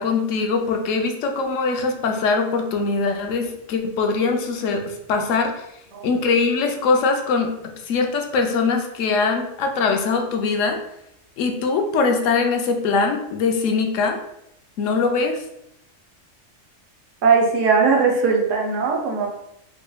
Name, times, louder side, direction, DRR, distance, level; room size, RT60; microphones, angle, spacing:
voice 1, 0.0-5.6 6.0-7.5 7.9-10.8 11.4-14.2 14.8-15.4, left 4 dB, 85° left, 3 dB, 1.0 m, -22 dB
voice 2, 17.2-19.3, right 5 dB, 80° right, 1 dB, 1.0 m, -19 dB
4.0 x 3.1 x 2.2 m, 0.79 s
omnidirectional pair, 1.3 m